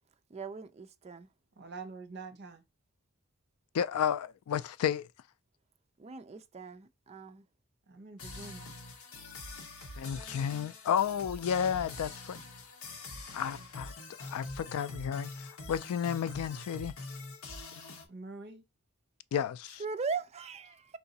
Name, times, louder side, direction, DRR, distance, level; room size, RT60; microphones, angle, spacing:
voice 1, 0.3-1.3 6.0-7.4 19.8-21.0, right 5 dB, 30° right, 0.4 m, -39 dB
voice 2, 1.6-2.6 7.9-8.7 18.1-18.6, right 4 dB, 50° right, 0.9 m, -45 dB
voice 3, 3.7-5.0 10.0-12.4 13.3-13.9 14.2-16.9 19.3-19.8, left 8 dB, 85° left, 0.3 m, -32 dB
sound 1, 8.2-18.1, left 2 dB, 70° left, 1.2 m, -45 dB
4.7 x 2.6 x 4.0 m
head